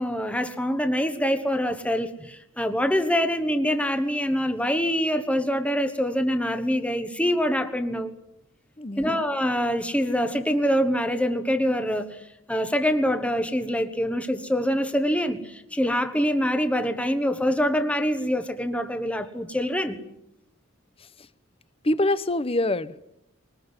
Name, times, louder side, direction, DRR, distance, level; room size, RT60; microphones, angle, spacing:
voice 1, 0.0-8.1 9.0-20.0, equal, 5° left, 1.3 m, -25 dB
voice 2, 8.8-9.2 21.0-21.3 21.8-23.0, left 1 dB, 25° left, 0.9 m, -25 dB
22.0 x 20.0 x 9.6 m
head